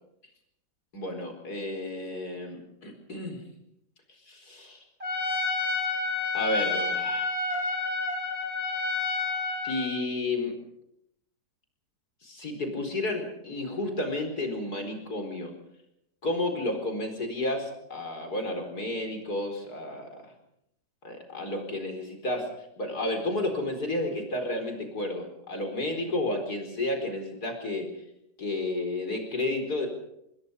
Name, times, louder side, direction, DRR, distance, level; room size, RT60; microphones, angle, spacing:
voice 1, 0.9-3.4 4.3-4.8 6.3-7.3 9.6-10.6 12.2-15.5 16.2-20.1 21.0-27.9 28.4-29.9, left 2 dB, 60° left, 4 dB, 5.0 m, -31 dB
Trumpet, 5.0-9.9, left 3 dB, 35° right, 5.2 m, -29 dB
27.0 x 21.0 x 5.3 m, 0.79 s
omnidirectional pair, 1.9 m